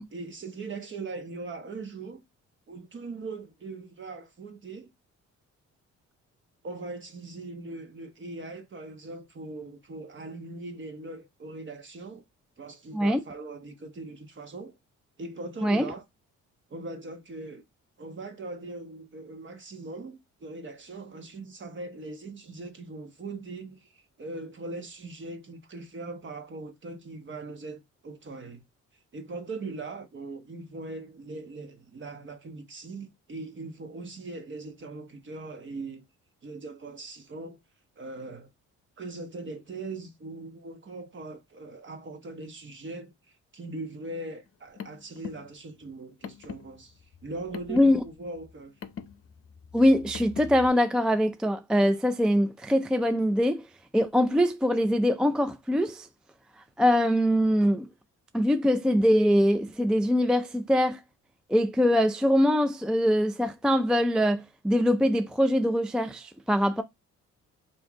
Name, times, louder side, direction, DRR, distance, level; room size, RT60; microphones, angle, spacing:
voice 1, 0.1-2.2 2.7-4.9 6.6-12.2 12.6-14.7 15.2-16.0 16.7-17.6 18.0-28.6 29.1-36.0 36.4-37.6 38.0-38.5 39.0-43.1 43.5-48.7, right 3 dB, 40° right, 1.2 m, -40 dB
Car, 44.5-50.7, left 7 dB, 45° left, 0.7 m, -43 dB
voice 2, 47.7-48.0 49.7-53.6 53.9-56.1 56.8-57.9 58.3-61.0 61.5-66.8, equal, 5° right, 0.4 m, -23 dB
4.5 x 2.8 x 3.6 m
cardioid pair, 90°, 30 cm